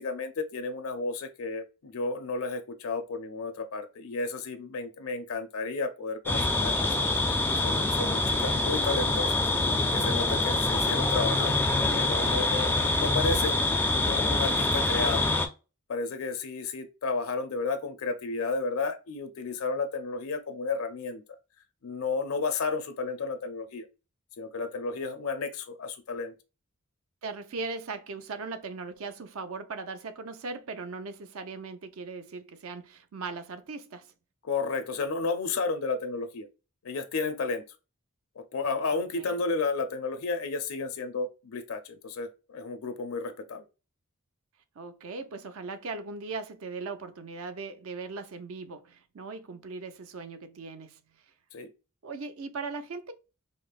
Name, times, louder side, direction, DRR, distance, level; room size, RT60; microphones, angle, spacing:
voice 1, 0.0-7.1 7.6-9.3 9.9-12.7 13.0-13.7 14.0-15.3 15.9-21.2 21.8-23.9 24.4-26.3 34.4-36.5 36.8-37.6 38.4-43.6 51.5-51.7, left 4 dB, 70° left, 0.5 m, -32 dB
sound 1, 6.3-15.5, left 2 dB, 10° left, 0.3 m, -25 dB
voice 2, 27.2-34.1 38.9-39.4 44.8-51.0 52.0-53.1, right 4 dB, 65° right, 0.5 m, -39 dB
5.1 x 2.0 x 2.4 m
head